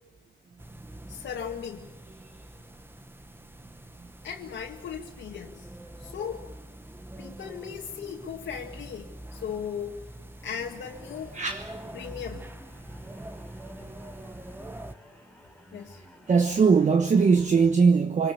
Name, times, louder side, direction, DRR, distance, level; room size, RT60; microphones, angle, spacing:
sound 1, 0.6-14.9, right 1 dB, 10° right, 1.1 m, -45 dB
voice 1, 1.1-1.9 4.2-5.7 6.0-6.5 7.2-10.1 10.4-11.4 11.9-12.5 15.7-16.0, left 7 dB, 65° left, 2.1 m, -37 dB
sound 2, 10.4-17.8, left 1 dB, 5° left, 5.3 m, -53 dB
voice 2, 11.3-11.7 16.3-18.3, right 5 dB, 35° right, 1.2 m, -21 dB
25.0 x 19.0 x 8.4 m
cardioid pair, 90°, 20 cm